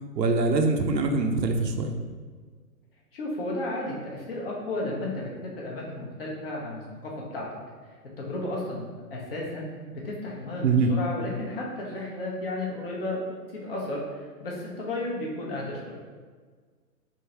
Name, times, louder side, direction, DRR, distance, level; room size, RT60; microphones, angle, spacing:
voice 1, 0.1-2.0 10.6-10.9, right 3 dB, 90° right, 4 dB, 0.7 m, -23 dB
voice 2, 3.1-5.3 5.6-7.5 8.2-13.2 13.5-16.0, left 1 dB, 35° left, -3 dB, 0.9 m, -33 dB
3.6 x 2.7 x 4.2 m, 1.5 s
hypercardioid pair, 150°, 49 cm